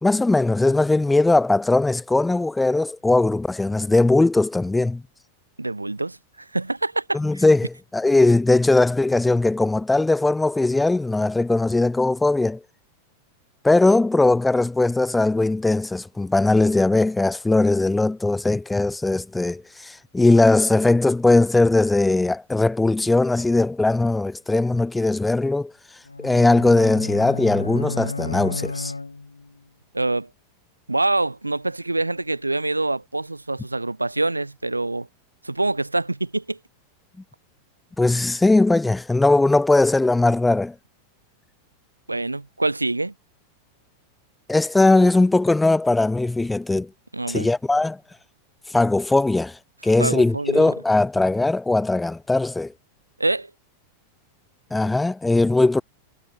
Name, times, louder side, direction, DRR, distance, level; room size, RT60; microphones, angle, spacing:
voice 1, 0.0-5.0 7.1-12.6 13.6-25.7 26.2-28.9 38.0-40.7 44.5-46.9 47.3-48.0 48.7-52.7 54.7-55.8, left 2 dB, 5° left, 3.0 m, -19 dB
voice 2, 5.6-7.4 29.9-30.3 30.9-35.1 35.4-36.6 42.1-43.1 47.1-47.5 50.0-50.7 53.2-53.5, right 2 dB, 85° right, 3.5 m, -25 dB
sound 1, 26.1-29.6, left 3 dB, 80° left, 3.0 m, -32 dB
figure-of-eight pair, 90°, 0 cm